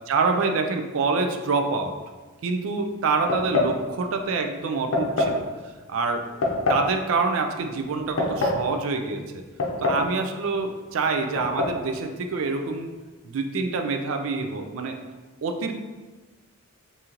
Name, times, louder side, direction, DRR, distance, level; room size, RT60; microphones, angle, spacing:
voice 1, 0.1-1.9 2.4-5.4 5.9-6.2 6.7-9.4 9.8-12.9 13.2-15.0 15.4-15.7, right 4 dB, 80° right, 5 dB, 0.4 m, -26 dB
sound 1, 3.3-3.8 4.9-5.4 6.4-6.9 7.9-8.6 9.6-10.1 10.4-10.5 11.4-11.8, left 2 dB, 85° left, 0.6 m, -24 dB
2.9 x 2.7 x 3.7 m, 1.3 s
head